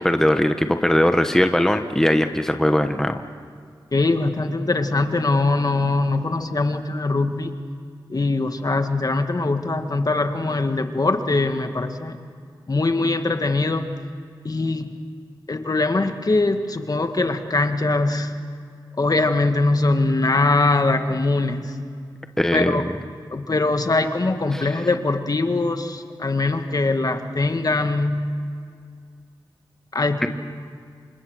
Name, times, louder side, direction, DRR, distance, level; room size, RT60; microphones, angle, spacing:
voice 1, 0.0-3.2 22.4-22.9 24.5-24.7 30.2-30.3, left 1 dB, 5° left, 7 dB, 1.2 m, -20 dB
voice 2, 3.9-7.5 8.1-12.2 12.7-13.9 14.4-14.9 15.5-18.3 19.0-21.7 22.5-22.8 23.3-28.3 29.9-30.3, left 2 dB, 45° left, 6 dB, 1.9 m, -22 dB
28.5 x 26.0 x 6.5 m, 2.2 s
cardioid pair, 60°, 9 cm